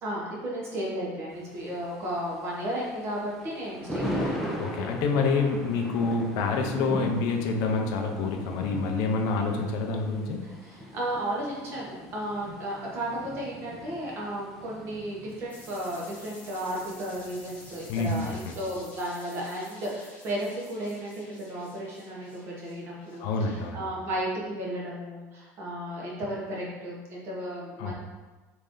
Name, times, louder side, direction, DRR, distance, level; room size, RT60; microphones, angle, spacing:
voice 1, 0.0-4.4 10.4-27.9, right 1 dB, 40° right, -4 dB, 1.0 m, -34 dB
Thunder, 1.3-18.4, equal, ahead, 0.4 m, -39 dB
voice 2, 4.6-10.4 12.5-12.6 17.9-18.1 18.5-18.6 23.2-23.8 27.8-27.9, left 4 dB, 65° left, 3 dB, 0.5 m, -27 dB
sound 1, 15.5-24.0, left 2 dB, 20° left, 0.8 m, -51 dB
3.2 x 2.6 x 3.6 m, 1.2 s
cardioid pair, 155°, 7 cm